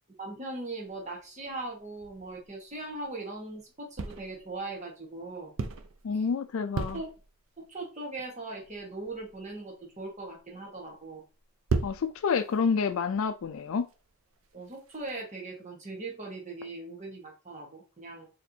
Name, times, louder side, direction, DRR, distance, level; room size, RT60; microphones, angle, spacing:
voice 1, 0.2-5.5 6.9-7.1 7.6-11.2 14.5-18.3, right 2 dB, 30° right, 1.3 m, -40 dB
sound 1, 0.9-3.6 4.0-4.6 5.2-6.3 6.5-7.6 8.2-8.3 8.6-15.1, right 4 dB, 60° right, 0.4 m, -37 dB
voice 2, 6.0-7.0 11.8-13.9, left 5 dB, 65° left, 0.3 m, -28 dB
4.3 x 3.3 x 2.7 m
head